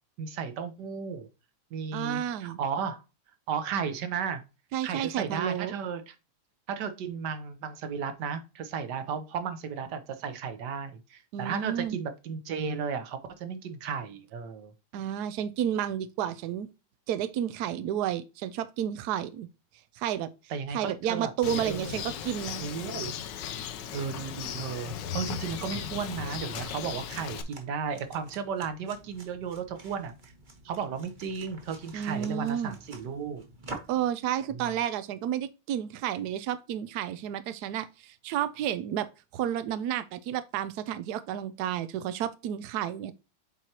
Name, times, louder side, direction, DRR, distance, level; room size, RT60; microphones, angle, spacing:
voice 1, 0.2-1.3 1.7-3.0 3.5-4.4 4.8-6.1 6.7-14.7 20.5-21.9 22.6-23.2 23.9-30.1 30.6-33.4 34.5-34.7, right 6 dB, 60° right, 1.3 m, -34 dB
voice 2, 1.9-2.6 4.7-5.7 11.3-12.0 14.9-16.7 17.1-19.5 20.0-20.3 20.7-22.6 31.9-32.8 33.9-43.1, right 10 dB, 85° right, 0.8 m, -31 dB
Bird, 21.4-27.4, left 8 dB, 70° left, 1.2 m, -37 dB
sound 1, 25.7-34.1, right 2 dB, 35° right, 0.9 m, -48 dB
7.8 x 4.5 x 2.8 m
omnidirectional pair, 2.3 m